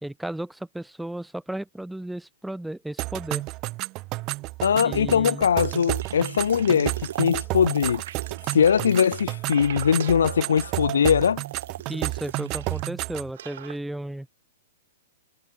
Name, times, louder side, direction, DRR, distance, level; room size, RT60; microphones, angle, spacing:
voice 1, 0.0-3.4 4.7-5.5 11.9-14.3, right 1 dB, 5° right, 0.3 m, -34 dB
sound 1, 3.0-13.3, right 21 dB, 35° right, 0.9 m, -32 dB
voice 2, 4.6-8.0 8.5-11.4, left 7 dB, 70° left, 0.4 m, -21 dB
sound 2, 5.6-12.9 13.1-13.8, right 11 dB, 60° right, 1.1 m, -38 dB
figure-of-eight pair, 110°, 0 cm